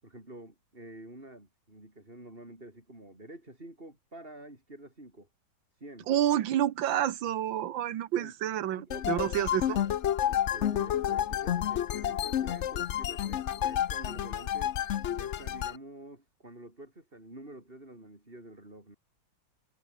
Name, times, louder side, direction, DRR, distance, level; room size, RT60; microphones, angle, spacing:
voice 1, 0.0-5.3 5.7-6.1 8.1-8.3 8.8-9.3 9.6-9.9 10.2-14.8 15.1-19.0, right 1 dB, 30° right, 6.4 m, -48 dB
voice 2, 6.1-8.8 9.1-9.8, right 11 dB, 85° right, 1.8 m, -28 dB
sound 1, 8.9-15.8, left 10 dB, 65° left, 0.7 m, -30 dB
omnidirectional pair, 2.0 m